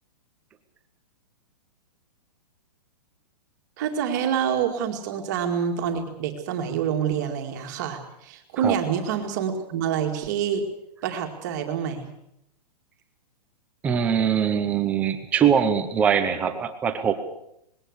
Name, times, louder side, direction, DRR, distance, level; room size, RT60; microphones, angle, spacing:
voice 1, 3.8-10.6 11.0-12.1, right 8 dB, 25° right, 4 dB, 2.2 m, -27 dB
voice 2, 13.8-17.1, right 8 dB, 5° right, 8 dB, 0.7 m, -22 dB
20.5 x 17.5 x 8.1 m, 0.78 s
hypercardioid pair, 180°, 21 cm